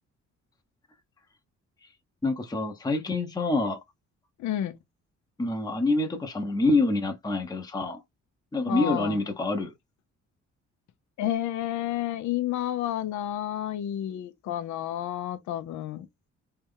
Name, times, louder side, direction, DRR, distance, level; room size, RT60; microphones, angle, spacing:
voice 1, 2.2-3.8 5.4-8.0 8.5-9.7, left 2 dB, 15° left, 0.8 m, -26 dB
voice 2, 4.4-4.8 8.7-9.2 11.2-16.1, left 12 dB, 70° left, 0.7 m, -30 dB
3.4 x 2.8 x 3.7 m
cardioid pair, 90°, 30 cm